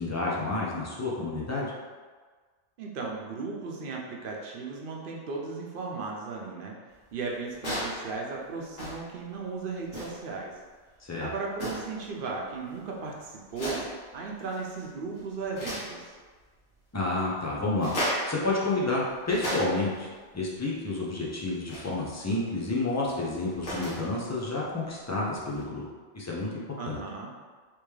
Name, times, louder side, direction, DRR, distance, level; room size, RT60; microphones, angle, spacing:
voice 1, 0.0-1.7 11.0-11.3 16.9-25.9 26.1-27.0, left 2 dB, 25° left, -4 dB, 0.4 m, -30 dB
voice 2, 2.8-6.7 7.1-10.5 11.2-13.8 14.1-16.1 26.8-27.3, right 4 dB, 55° right, -2 dB, 0.7 m, -36 dB
sound 1, 7.5-8.1 8.7-9.1 9.9-10.3 11.5-12.0 13.5-14.0 14.5-14.9 15.1-15.9 17.8-18.4 19.0-20.0 21.7-21.9 23.3-24.1 25.5-25.6, equal, 75° left, 1.6 m, -34 dB
3.5 x 2.9 x 3.2 m, 1.4 s
omnidirectional pair, 1.2 m